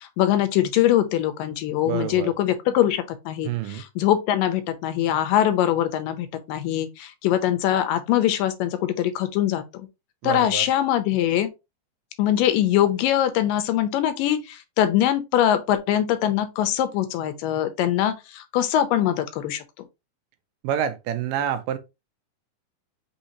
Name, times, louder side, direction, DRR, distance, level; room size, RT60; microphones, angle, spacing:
voice 1, 0.0-9.9 10.2-11.5 12.2-19.9, left 11 dB, 85° left, 2.3 m, -23 dB
voice 2, 1.9-2.3 3.4-3.8 10.2-10.7 20.6-21.8, right 10 dB, 80° right, 2.2 m, -27 dB
5.6 x 2.7 x 2.8 m
omnidirectional pair, 3.9 m